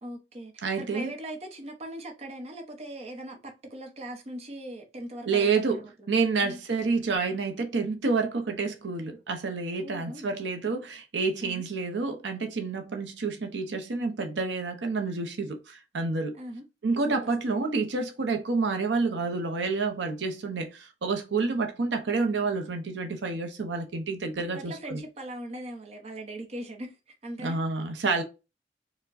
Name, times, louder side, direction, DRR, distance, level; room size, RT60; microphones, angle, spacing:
voice 1, 0.0-6.6 9.8-10.3 11.4-11.6 16.3-16.6 17.1-17.2 21.4-21.7 24.5-27.0 27.2-27.6, right 1 dB, 35° right, 0.7 m, -40 dB
voice 2, 0.6-1.1 5.3-16.4 16.8-25.0 27.4-28.2, right 4 dB, 90° right, 0.6 m, -29 dB
4.5 x 2.1 x 2.5 m
head